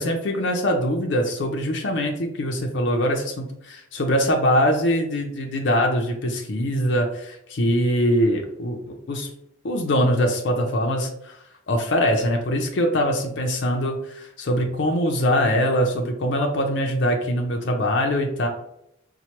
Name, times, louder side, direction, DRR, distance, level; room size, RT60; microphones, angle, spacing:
voice 1, 0.0-9.3 9.6-11.4 11.7-18.5, equal, 60° left, 2 dB, 0.5 m, -23 dB
4.3 x 2.2 x 2.9 m, 0.76 s
head